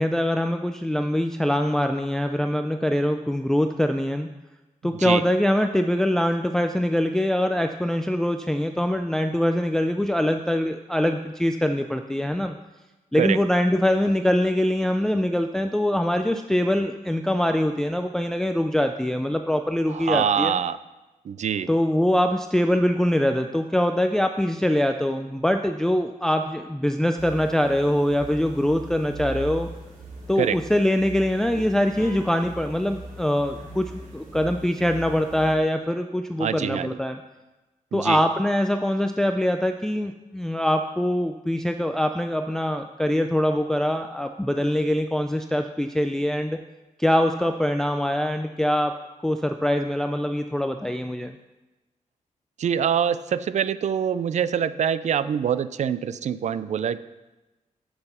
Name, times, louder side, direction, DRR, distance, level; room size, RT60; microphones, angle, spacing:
voice 1, 0.0-4.3 4.8-12.5 13.1-20.5 21.7-29.7 30.3-37.2 37.9-46.6 47.0-48.9 49.2-51.3, left 1 dB, 5° left, 6 dB, 0.3 m, -23 dB
voice 2, 19.9-20.8 21.2-21.7 30.4-30.6 36.4-37.0 37.9-38.2 52.6-57.0, right 8 dB, 60° right, 14 dB, 0.4 m, -25 dB
sound 1, 27.2-35.5, right 2 dB, 75° right, 2.7 m, -40 dB
10.5 x 8.0 x 4.3 m, 1.1 s
wide cardioid pair, 175°, 14 cm